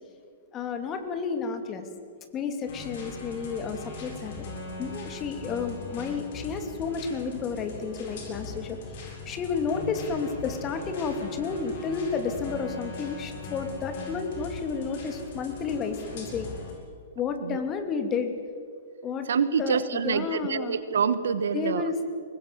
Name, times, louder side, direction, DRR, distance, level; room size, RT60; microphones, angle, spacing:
voice 1, 0.5-1.9 2.3-4.5 4.8-8.8 9.0-16.5 17.1-18.3 19.0-19.3 19.6-20.8 21.5-22.0, left 5 dB, 25° left, 6 dB, 2.8 m, -31 dB
sound 1, 2.7-16.7, left 3 dB, 55° left, 7.4 m, -40 dB
voice 2, 19.3-21.9, right 6 dB, 70° right, 14 dB, 1.3 m, -26 dB
24.5 x 20.0 x 7.7 m, 2.2 s
figure-of-eight pair, 115°, 0 cm